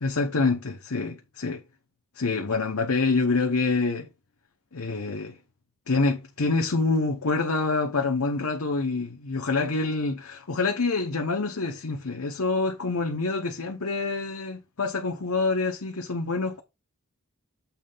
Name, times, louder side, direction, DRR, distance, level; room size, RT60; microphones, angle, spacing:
voice 1, 0.0-1.6 2.2-4.1 4.7-5.4 5.9-16.6, left 3 dB, 75° left, 1.0 m, -26 dB
7.1 x 3.3 x 5.6 m
head